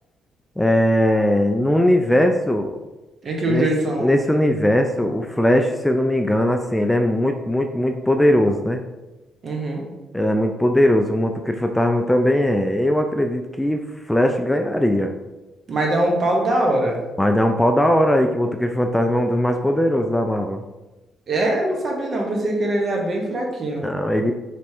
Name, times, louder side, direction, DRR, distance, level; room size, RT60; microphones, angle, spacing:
voice 1, 0.6-2.8 3.5-3.7 4.0-8.8 10.1-15.1 17.2-20.6 23.8-24.3, left 1 dB, 5° left, 4 dB, 0.3 m, -19 dB
voice 2, 3.2-4.2 9.4-9.8 15.7-17.0 21.3-23.8, right 1 dB, 50° right, 0 dB, 1.0 m, -22 dB
3.4 x 3.0 x 4.4 m, 1.1 s
cardioid pair, 90°, 0 cm